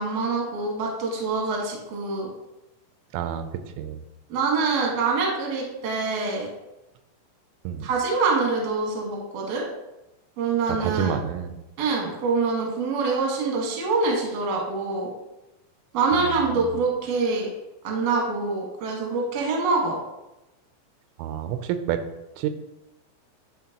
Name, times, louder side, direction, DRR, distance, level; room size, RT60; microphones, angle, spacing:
voice 1, 0.0-2.3 4.3-6.5 7.8-9.6 10.4-11.1 11.8-15.1 15.9-17.5 17.8-20.0, right 4 dB, 70° right, -1 dB, 1.5 m, -25 dB
voice 2, 3.1-3.5 3.8-4.0 7.6-7.9 10.7-11.5 16.1-16.7 21.2-22.0 22.4-22.5, right 9 dB, 90° right, 9 dB, 3.0 m, -29 dB
10.5 x 3.7 x 2.9 m, 0.96 s
omnidirectional pair, 5.4 m